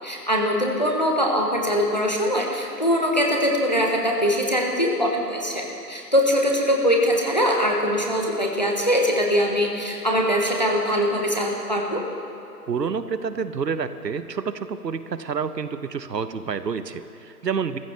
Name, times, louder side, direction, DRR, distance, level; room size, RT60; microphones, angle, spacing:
voice 1, 0.0-12.0, equal, 25° left, 0 dB, 1.0 m, -22 dB
voice 2, 12.7-17.8, right 6 dB, 80° right, 12 dB, 1.0 m, -28 dB
22.5 x 14.5 x 3.3 m, 2.8 s
hypercardioid pair, 180°, 49 cm